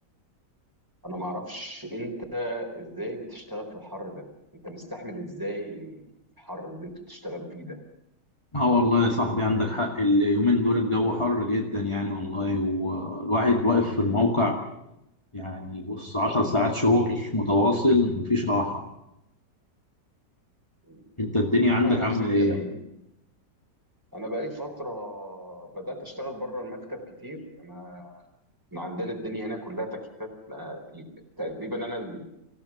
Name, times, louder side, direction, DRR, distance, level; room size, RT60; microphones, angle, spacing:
voice 1, 1.0-4.3 4.5-6.0 6.4-7.8 20.8-21.0 21.7-22.8 24.1-28.2 28.7-31.1 31.4-32.2, equal, 10° right, 3 dB, 4.2 m, -36 dB
voice 2, 8.5-14.6 15.3-18.8 21.2-22.6, left 2 dB, 15° left, -1 dB, 2.3 m, -23 dB
26.0 x 17.0 x 7.3 m, 0.86 s
omnidirectional pair, 1.9 m